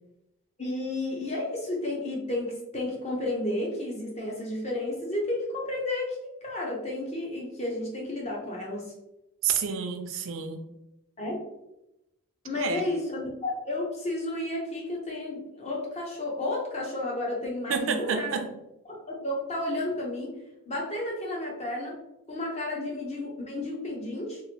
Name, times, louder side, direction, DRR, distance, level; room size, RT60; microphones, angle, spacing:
voice 1, 0.6-8.9 11.2-11.3 12.4-18.4 18.9-20.4 20.7-22.0 22.3-24.4, left 2 dB, 30° left, -2 dB, 0.6 m, -32 dB
voice 2, 9.4-10.6 12.5-12.8 17.7-18.5 22.8-22.9, right 6 dB, 70° right, 6 dB, 0.4 m, -29 dB
2.9 x 2.5 x 2.8 m, 0.90 s
head